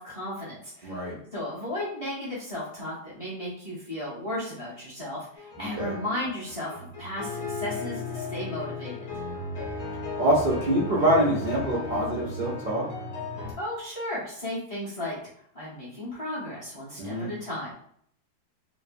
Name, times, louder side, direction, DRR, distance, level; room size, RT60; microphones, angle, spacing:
voice 1, 0.0-9.1 13.6-15.2 15.5-17.7, left 1 dB, 30° left, -7 dB, 0.6 m, -35 dB
voice 2, 0.8-1.1 5.6-5.9 10.2-12.8 17.0-17.3, right 1 dB, 80° right, -5 dB, 0.4 m, -25 dB
sound 1, 5.4-13.5, left 3 dB, 60° left, 1.0 m, -35 dB
3.0 x 2.0 x 2.5 m, 0.65 s
omnidirectional pair, 1.7 m